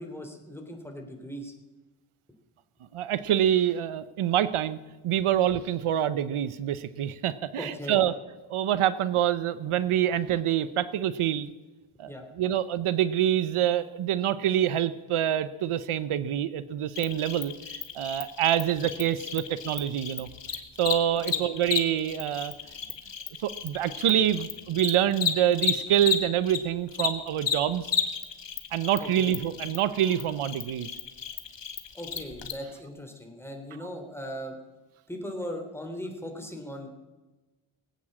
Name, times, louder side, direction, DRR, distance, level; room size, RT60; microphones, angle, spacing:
voice 1, 0.0-1.5 7.6-8.0 12.1-12.3 21.1-21.5 29.0-29.3 31.9-34.6 35.1-36.9, equal, 5° left, 3 dB, 3.3 m, -38 dB
voice 2, 2.9-4.8 5.0-8.1 8.5-11.5 12.0-20.3 20.8-22.5 23.4-27.9 28.7-30.9, right 11 dB, 80° right, 15 dB, 0.8 m, -26 dB
Cricket, 16.9-26.6 26.9-32.5, left 7 dB, 60° left, 1.8 m, -33 dB
19.0 x 8.5 x 7.5 m, 1.2 s
cardioid pair, 65°, 49 cm